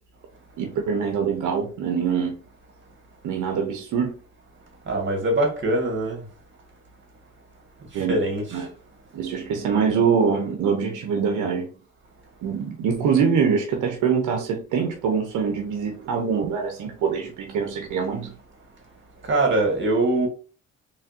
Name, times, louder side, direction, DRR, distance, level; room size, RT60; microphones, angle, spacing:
voice 1, 0.6-2.4 3.2-4.1 7.9-8.2 8.5-8.7 9.1-11.7 12.4-18.4, right 6 dB, 80° right, 1.0 m, -24 dB
voice 2, 4.9-6.2 8.1-8.4 19.3-20.3, right 2 dB, 40° right, 1.9 m, -22 dB
4.2 x 3.5 x 2.8 m
cardioid pair, 90°, 30 cm